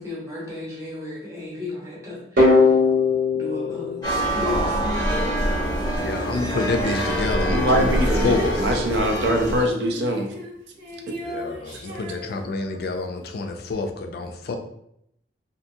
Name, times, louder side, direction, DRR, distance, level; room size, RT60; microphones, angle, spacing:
voice 1, 0.0-2.7 3.3-5.1, left 2 dB, 15° right, -5 dB, 0.8 m, -34 dB
sound 1, 2.4-5.2, left 3 dB, 50° right, 0.8 m, -20 dB
sound 2, 4.0-9.6, equal, 25° left, 0.6 m, -25 dB
voice 2, 6.0-8.8 11.2-14.6, left 3 dB, 55° left, 5 dB, 0.3 m, -28 dB
Female singing, 6.6-13.0 13.7-13.8, equal, 90° right, 1.2 m, -35 dB
voice 3, 7.3-10.3, equal, 70° right, 2 dB, 0.5 m, -23 dB
2.7 x 2.5 x 2.6 m, 0.75 s
head